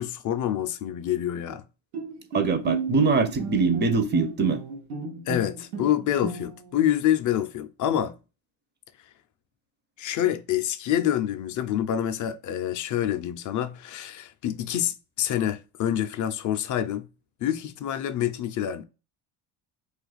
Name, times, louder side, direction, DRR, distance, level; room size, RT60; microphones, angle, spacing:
voice 1, 0.0-1.6 5.3-8.2 10.0-17.1 17.4-18.8, left 11 dB, 40° left, 0.4 m, -27 dB
Bowed string instrument, 1.9-6.8, right 4 dB, 90° right, 0.8 m, -34 dB
voice 2, 2.3-4.6, right 4 dB, 25° right, 0.4 m, -23 dB
2.4 x 2.4 x 3.9 m
supercardioid pair, 95°, 49 cm